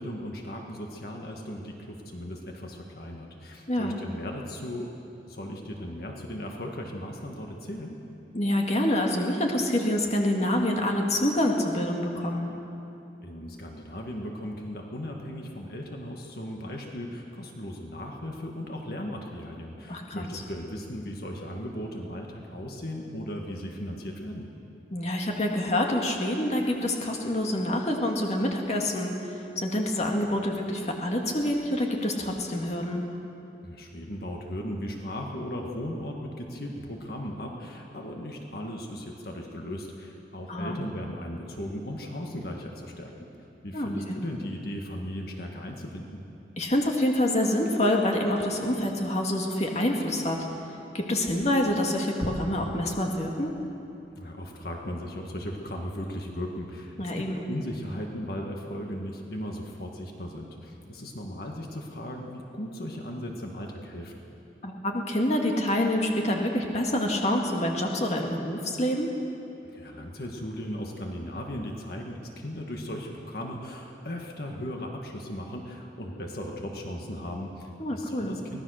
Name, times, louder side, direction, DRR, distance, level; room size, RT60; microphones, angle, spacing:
voice 1, 0.0-4.9 5.3-8.0 13.2-24.5 33.6-43.1 43.6-46.2 54.2-64.2 69.6-78.6, equal, 55° left, 1 dB, 1.8 m, -37 dB
voice 2, 8.3-12.5 19.9-20.3 24.9-29.1 29.6-33.0 40.5-40.8 43.7-44.2 46.6-50.4 50.9-53.5 57.0-57.5 64.6-69.1 77.8-78.4, left 1 dB, 40° left, 1 dB, 2.0 m, -27 dB
24.0 x 18.0 x 6.5 m, 2.8 s
head